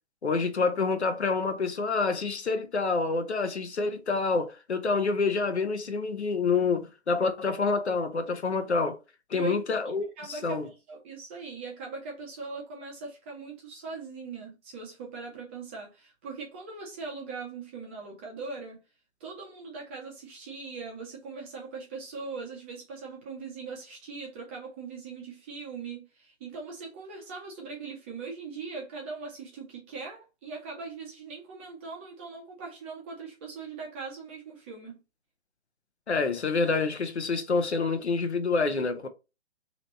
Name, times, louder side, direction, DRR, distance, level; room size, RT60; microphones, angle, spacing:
voice 1, 0.2-9.0 9.3-10.7 36.1-39.1, left 4 dB, 75° left, 0.8 m, -27 dB
voice 2, 10.2-18.8 19.2-35.0, right 4 dB, 10° right, 0.5 m, -40 dB
3.1 x 2.8 x 4.1 m
figure-of-eight pair, 130°, 33 cm